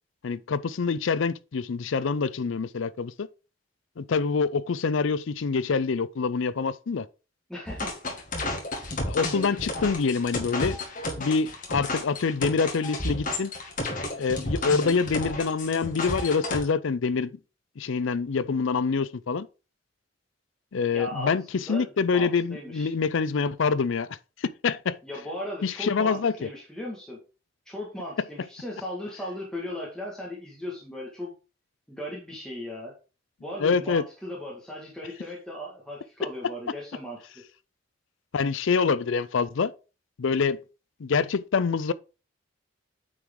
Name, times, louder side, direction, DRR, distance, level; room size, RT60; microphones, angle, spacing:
voice 1, 0.2-3.3 4.0-7.1 9.1-10.8 11.2-13.5 14.2-17.3 17.8-19.5 20.7-24.1 24.6-25.0 25.6-26.5 33.6-34.0 38.3-39.7 40.2-40.6 41.0-41.9, left 5 dB, 70° left, 0.4 m, -26 dB
voice 2, 7.5-8.0 20.9-22.9 25.0-27.2 27.6-31.3 31.9-32.9 33.4-37.2, left 1 dB, 5° left, 1.7 m, -37 dB
sound 1, 7.7-16.6, left 2 dB, 40° left, 1.9 m, -32 dB
8.6 x 4.8 x 3.7 m
head